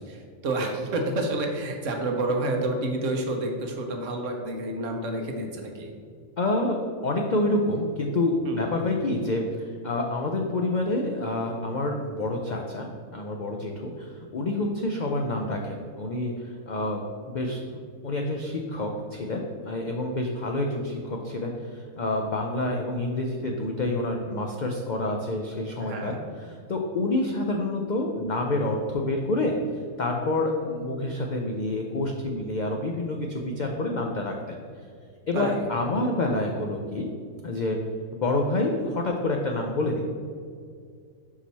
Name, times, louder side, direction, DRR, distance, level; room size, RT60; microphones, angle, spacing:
voice 1, 0.0-5.9 8.4-8.7 25.8-26.2 35.3-35.6, right 2 dB, 70° right, 2 dB, 1.1 m, -29 dB
voice 2, 6.4-6.8 7.0-12.9 13.1-29.6 30.0-34.6 35.3-37.1 37.4-37.8 38.1-40.0, left 2 dB, 65° left, 1 dB, 0.4 m, -28 dB
5.6 x 4.9 x 4.1 m, 2.2 s
omnidirectional pair, 1.4 m